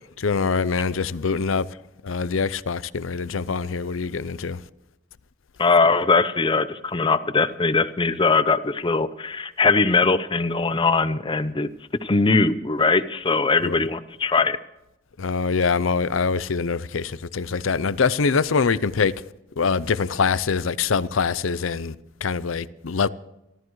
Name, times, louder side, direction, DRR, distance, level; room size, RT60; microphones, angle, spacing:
voice 1, 0.2-1.7 2.0-4.6 13.6-13.8 15.2-19.1 19.6-21.9 22.2-23.1, left 5 dB, 85° left, 0.6 m, -24 dB
voice 2, 5.6-11.7 12.0-14.6, left 4 dB, 25° left, 0.7 m, -21 dB
28.0 x 13.0 x 3.2 m
head